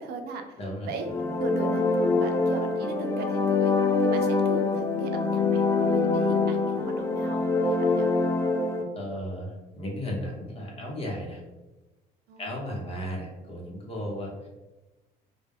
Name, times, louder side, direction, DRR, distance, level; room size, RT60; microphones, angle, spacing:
voice 1, 0.0-1.1 1.4-3.7 4.0-8.1 12.3-12.5, right 3 dB, 75° right, 4 dB, 0.5 m, -37 dB
voice 2, 0.6-1.3 8.9-11.4 12.4-14.5, equal, 35° left, -2 dB, 0.9 m, -35 dB
sound 1, 0.9-8.8, left 3 dB, 15° left, 0.3 m, -25 dB
2.2 x 2.2 x 3.4 m, 1.1 s
cardioid pair, 110°, 17 cm